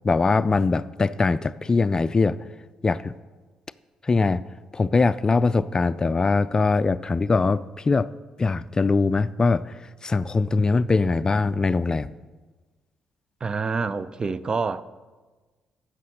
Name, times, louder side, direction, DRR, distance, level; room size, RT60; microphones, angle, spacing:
voice 1, 0.0-2.4 2.8-3.1 4.0-4.4 4.7-8.1 8.4-9.7 10.0-12.1, left 3 dB, 30° left, 0.3 m, -22 dB
voice 2, 13.4-14.8, right 4 dB, 35° right, 0.5 m, -27 dB
9.7 x 6.5 x 6.3 m
hypercardioid pair, 45°, 2 cm